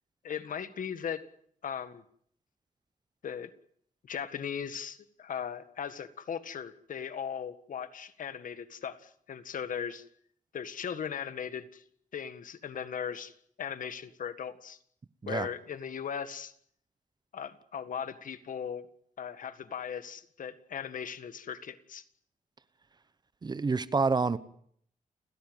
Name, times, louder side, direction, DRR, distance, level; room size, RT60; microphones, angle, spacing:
voice 1, 0.2-1.3 1.6-2.0 3.2-3.5 4.0-10.0 10.5-11.8 12.1-13.3 13.6-14.8 15.3-16.5 17.3-18.9 19.2-22.0, left 7 dB, 75° left, 1.8 m, -38 dB
voice 2, 23.4-24.4, right 4 dB, 30° right, 1.0 m, -27 dB
30.0 x 16.5 x 9.3 m
wide cardioid pair, 170°, 14 cm